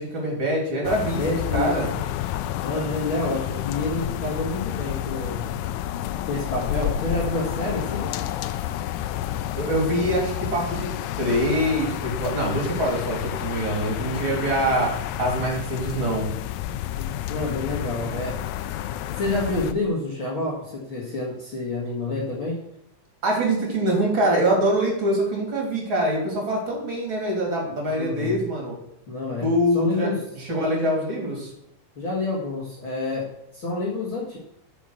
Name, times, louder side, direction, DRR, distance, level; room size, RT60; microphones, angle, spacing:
voice 1, 0.0-1.9 9.6-10.9 11.2-14.9 15.2-16.3 23.2-28.8 29.4-31.5, right 1 dB, 40° right, -2 dB, 3.6 m, -24 dB
sound 1, 0.8-19.7, left 12 dB, 80° left, 2.0 m, -30 dB
voice 2, 1.2-2.0 2.6-5.5 6.3-8.1 17.0-18.4 19.2-22.6 27.9-28.4 29.1-30.2 32.0-34.4, left 2 dB, 45° left, -5 dB, 2.3 m, -28 dB
8.8 x 6.0 x 6.5 m, 0.79 s
omnidirectional pair, 3.7 m